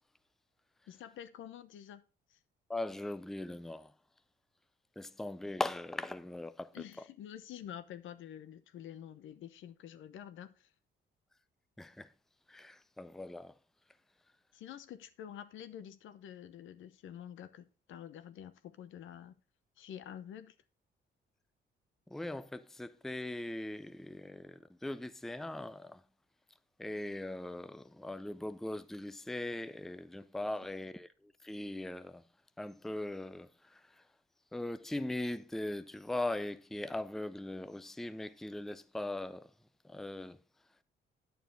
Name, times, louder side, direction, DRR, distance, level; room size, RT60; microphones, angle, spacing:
voice 1, 0.9-2.0 2.3-2.4 6.7-10.7 14.5-19.4 19.8-20.5, left 10 dB, 80° left, 0.8 m, -48 dB
voice 2, 2.7-3.9 5.0-6.8 11.8-12.1 12.5-13.5 22.1-26.0 26.8-32.2 32.6-34.0 34.5-39.5 39.8-40.4, left 1 dB, ahead, 0.5 m, -40 dB
8.9 x 6.9 x 3.9 m
cardioid pair, 90°, 20 cm